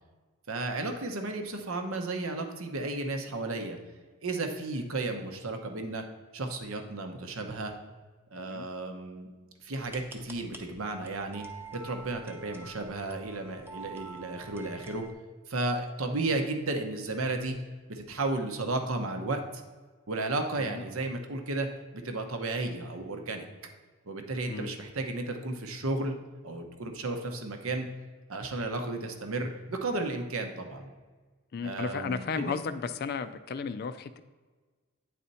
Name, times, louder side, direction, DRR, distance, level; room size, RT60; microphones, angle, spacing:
voice 1, 0.5-3.8 4.2-6.0 6.3-7.7 8.3-9.3 9.6-11.4 11.7-15.0 15.5-17.6 17.9-19.4 20.1-21.7 21.9-23.4 24.1-26.1 26.4-27.9 28.3-30.9 31.6-32.5, right 2 dB, 80° right, 5 dB, 0.9 m, -33 dB
sound 1, 9.8-15.1, right 4 dB, 10° right, 0.5 m, -47 dB
voice 2, 31.5-34.2, left 5 dB, 45° left, 11 dB, 0.3 m, -34 dB
9.1 x 4.3 x 4.1 m, 1.4 s
head